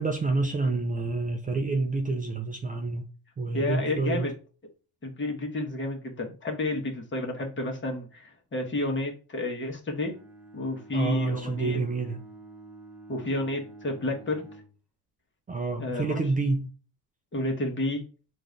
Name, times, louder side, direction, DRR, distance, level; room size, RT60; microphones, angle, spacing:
voice 1, 0.0-3.0 3.4-4.3 10.9-12.2 15.5-16.7, right 3 dB, 20° right, 0.5 m, -28 dB
voice 2, 3.5-4.3 5.0-10.1 10.5-11.8 13.1-14.4 15.8-16.2 17.3-18.0, left 2 dB, 30° left, 1.4 m, -31 dB
Bowed string instrument, 9.9-14.8, right 2 dB, 5° right, 1.0 m, -48 dB
3.8 x 2.6 x 4.7 m
supercardioid pair, 90°, 39 cm